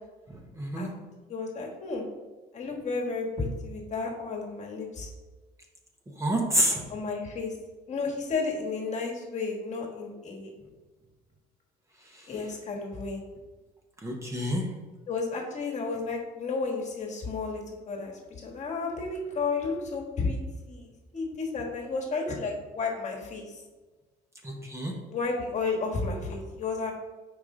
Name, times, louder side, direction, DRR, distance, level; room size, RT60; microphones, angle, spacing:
voice 1, 0.5-0.9 6.2-6.8 14.0-14.6 24.4-24.9, equal, 15° right, 0 dB, 0.9 m, -27 dB
voice 2, 1.3-2.0 2.5-5.1 6.7-7.5 7.9-10.5 12.3-13.2 15.1-20.4 20.7-23.6 25.1-26.9, left 4 dB, 45° left, -1 dB, 1.4 m, -32 dB
5.4 x 4.9 x 3.7 m, 1.3 s
cardioid pair, 110°, 17 cm